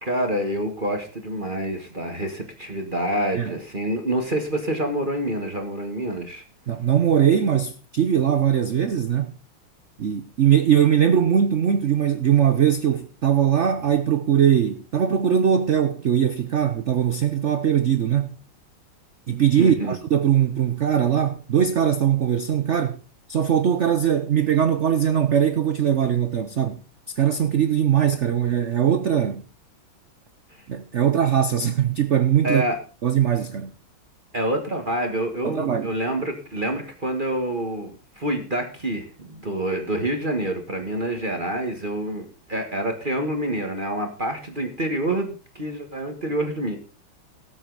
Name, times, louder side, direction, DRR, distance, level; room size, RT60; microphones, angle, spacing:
voice 1, 0.0-6.4 19.6-20.0 30.5-30.6 32.4-32.8 34.3-46.8, right 1 dB, 25° right, 1.6 m, -27 dB
voice 2, 6.7-9.4 10.0-18.4 19.3-23.0 23.3-26.8 27.2-29.4 30.7-32.6 33.0-33.7 35.4-35.9, right 9 dB, 70° right, 0.6 m, -21 dB
18.0 x 8.2 x 4.0 m
omnidirectional pair, 2.2 m